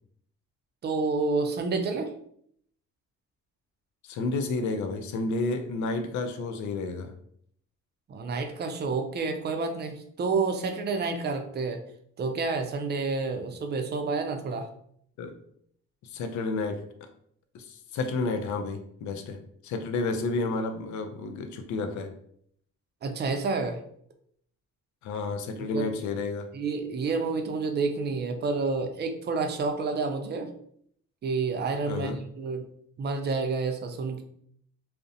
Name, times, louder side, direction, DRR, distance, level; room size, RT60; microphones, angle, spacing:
voice 1, 0.8-2.1 8.1-11.8 12.2-14.7 23.0-23.8 25.6-25.9 26.5-30.5 31.2-32.6 33.0-34.2, right 4 dB, 35° right, 5 dB, 0.4 m, -29 dB
voice 2, 4.0-7.1 15.2-15.4 16.0-16.8 17.5-19.4 19.6-22.1 25.0-26.5 31.9-32.2, left 3 dB, 70° left, 6 dB, 0.5 m, -31 dB
2.4 x 2.0 x 2.6 m, 0.67 s
cardioid pair, 90°, 30 cm